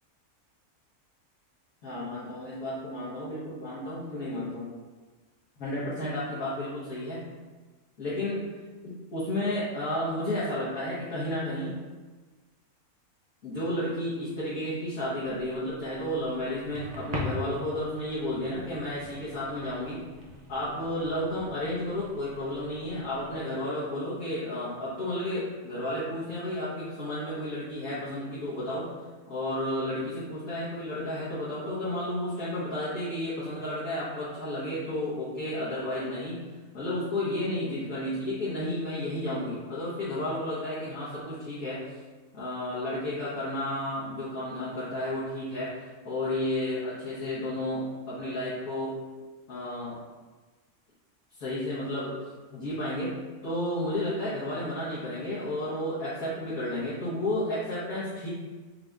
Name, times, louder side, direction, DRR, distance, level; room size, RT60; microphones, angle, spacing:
voice 1, 1.8-4.7 5.6-7.2 8.0-8.4 8.8-11.8 13.4-20.0 20.5-28.9 29.3-36.4 36.7-42.0 42.3-49.0 49.5-50.0 51.4-52.1 52.5-53.1 53.4-58.3, left 1 dB, 70° left, -11 dB, 1.7 m, -32 dB
sound 1, 15.2-23.4, left 1 dB, 35° right, 0.7 m, -42 dB
5.7 x 2.5 x 3.4 m, 1.3 s
omnidirectional pair, 1.6 m